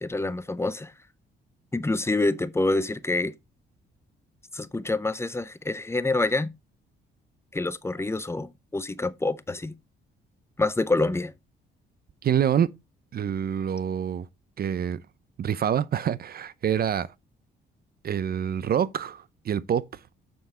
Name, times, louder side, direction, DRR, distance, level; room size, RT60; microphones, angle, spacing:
voice 1, 0.0-0.9 1.7-3.3 4.5-6.5 7.5-9.7 10.6-11.3, left 2 dB, 15° left, 0.8 m, -27 dB
voice 2, 12.2-12.7 13.1-14.3 14.6-15.0 15.4-17.1 18.0-19.8, right 9 dB, 50° right, 0.6 m, -26 dB
7.0 x 6.4 x 4.4 m
cardioid pair, 90°, 20 cm